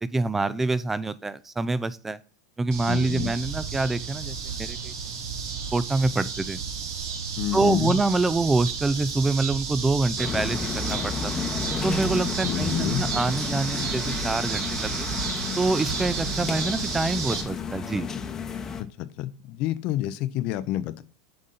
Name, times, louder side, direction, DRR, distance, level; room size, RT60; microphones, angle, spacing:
voice 1, 0.0-2.2 2.6-4.9 5.7-6.6 7.5-11.4 11.8-15.1 15.6-18.1, right 3 dB, 15° right, 16 dB, 0.4 m, -26 dB
sound 1, 2.7-17.4, right 6 dB, 65° right, 1.4 m, -32 dB
voice 2, 2.9-3.3 7.4-8.0 12.4-13.0 19.0-21.0, left 13 dB, 50° left, 13 dB, 0.6 m, -28 dB
sound 2, 10.2-18.8, left 6 dB, 25° left, 0.8 m, -32 dB
7.7 x 3.7 x 4.0 m, 0.39 s
hypercardioid pair, 90°, 2 cm